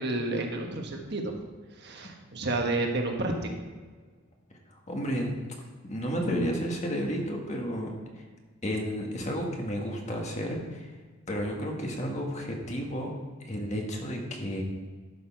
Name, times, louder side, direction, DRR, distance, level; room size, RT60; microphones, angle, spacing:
voice 1, 0.0-1.3 1.8-3.5 6.2-6.5, right 2 dB, 55° right, 3 dB, 1.2 m, -30 dB
voice 2, 4.7-5.3 5.8-8.2 8.6-10.9 11.3-13.1 13.4-14.6, equal, 35° left, 1 dB, 1.5 m, -32 dB
12.0 x 6.4 x 4.6 m, 1.5 s
head